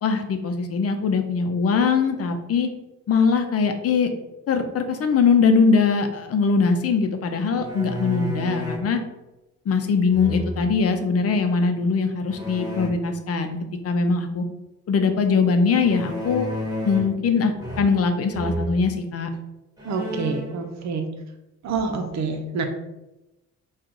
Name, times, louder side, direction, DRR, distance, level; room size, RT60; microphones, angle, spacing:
voice 1, 0.0-2.7 3.1-4.1 4.5-9.0 9.7-13.6 13.8-14.4 14.9-16.5 16.8-19.3, left 5 dB, 50° left, 6 dB, 0.7 m, -21 dB
sound 1, 7.6-8.9 10.1-10.8 12.3-12.9 15.8-17.2 17.6-18.1 18.3-18.7 19.3-19.4 19.8-20.5, equal, 15° right, 1.4 m, -31 dB
voice 2, 19.8-21.1 21.6-22.6, right 4 dB, 65° right, 5 dB, 0.8 m, -27 dB
4.6 x 2.4 x 3.7 m, 0.98 s
cardioid pair, 90°, 30 cm